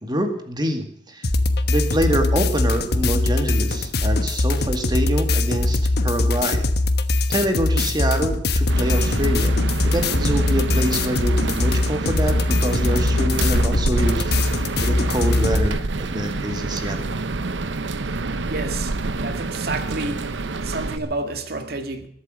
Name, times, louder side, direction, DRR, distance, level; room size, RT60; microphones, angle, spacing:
voice 1, 0.0-1.3 1.7-6.7 7.3-9.5 9.8-17.1, right 1 dB, 25° right, 5 dB, 2.1 m, -26 dB
sound 1, 1.2-15.7, left 2 dB, 55° left, 1.2 m, -21 dB
sound 2, 8.7-21.0, right 3 dB, 75° right, 0.8 m, -27 dB
voice 2, 18.5-22.1, right 2 dB, 55° right, 7 dB, 1.9 m, -30 dB
21.0 x 8.4 x 6.5 m, 0.67 s
head